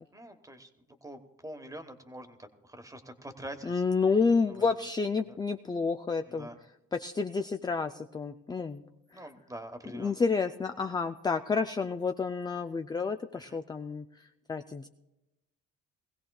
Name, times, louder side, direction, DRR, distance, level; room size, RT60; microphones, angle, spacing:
voice 1, 0.1-3.8 4.5-4.7 5.2-5.4 6.3-6.6 9.1-10.1 13.5-13.6, right 1 dB, 10° right, 7 dB, 1.2 m, -45 dB
voice 2, 3.7-6.5 6.9-8.8 10.0-14.1 14.5-14.9, left 4 dB, 15° left, 7 dB, 0.3 m, -29 dB
20.5 x 16.0 x 2.3 m, 0.96 s
cardioid pair, 90°, 30 cm